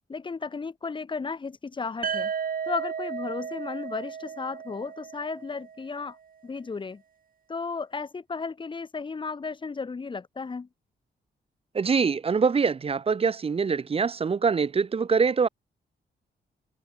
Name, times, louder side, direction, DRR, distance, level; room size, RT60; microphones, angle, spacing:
voice 1, 0.1-2.3 2.7-6.2 6.4-7.0 7.5-10.7, left 4 dB, 25° left, 0.8 m, -34 dB
sound 1, 2.0-5.9, right 7 dB, 50° right, 1.3 m, -34 dB
voice 2, 11.7-15.5, right 5 dB, 30° right, 0.6 m, -24 dB
wide cardioid pair, 115°, 18 cm